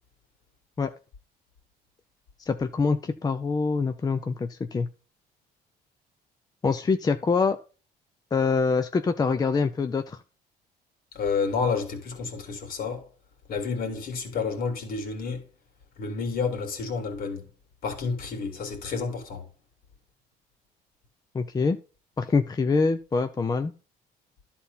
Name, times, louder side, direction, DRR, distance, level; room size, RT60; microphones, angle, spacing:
voice 1, 2.5-4.9 6.6-7.6 8.3-10.2 21.3-21.8 22.2-23.7, left 4 dB, 25° left, 0.6 m, -25 dB
voice 2, 11.1-13.0 13.5-15.4 16.0-17.5 17.8-19.4, left 5 dB, 60° left, 3.0 m, -30 dB
11.5 x 4.3 x 5.6 m
cardioid pair, 110°, 17 cm